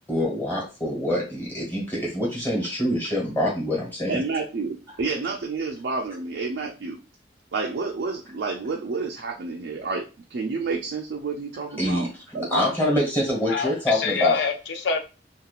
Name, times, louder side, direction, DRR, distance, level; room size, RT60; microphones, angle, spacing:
voice 1, 0.1-4.2 11.8-14.4, left 1 dB, 10° left, 1.3 m, -25 dB
voice 2, 4.1-7.0 7.5-10.0 10.3-12.1 12.3-12.6, right 4 dB, 70° right, 0.4 m, -29 dB
voice 3, 13.5-15.0, left 5 dB, 75° left, 0.5 m, -26 dB
2.8 x 2.3 x 2.3 m
head